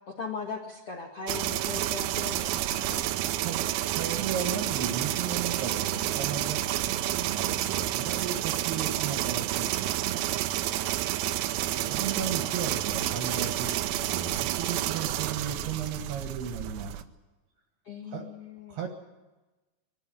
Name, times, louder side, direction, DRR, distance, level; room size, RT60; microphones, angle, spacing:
voice 1, 0.2-3.0 17.8-18.8, left 4 dB, 85° left, 1 dB, 1.2 m, -39 dB
sound 1, 1.3-17.0, right 14 dB, 90° right, 3.6 m, -30 dB
voice 2, 3.3-10.3 11.7-17.0 18.1-18.3 18.7-18.9, right 7 dB, 60° right, 3 dB, 3.2 m, -35 dB
22.5 x 14.0 x 9.9 m, 1.1 s
omnidirectional pair, 5.9 m